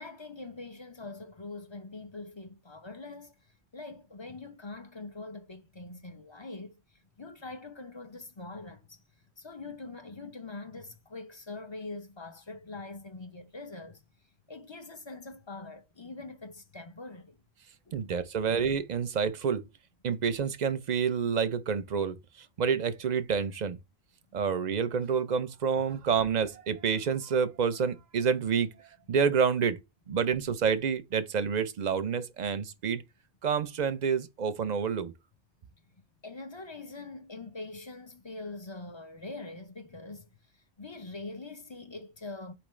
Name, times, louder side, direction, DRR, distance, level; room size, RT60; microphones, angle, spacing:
voice 1, 0.0-14.0 14.5-17.4 17.9-18.1 36.2-42.5, left 3 dB, 30° left, 0.6 m, -43 dB
voice 2, 17.9-19.6 20.0-23.8 24.3-28.7 29.1-29.8 30.1-33.0 33.4-35.1, right 6 dB, 50° right, 0.6 m, -28 dB
4.5 x 3.5 x 3.1 m
omnidirectional pair, 1.1 m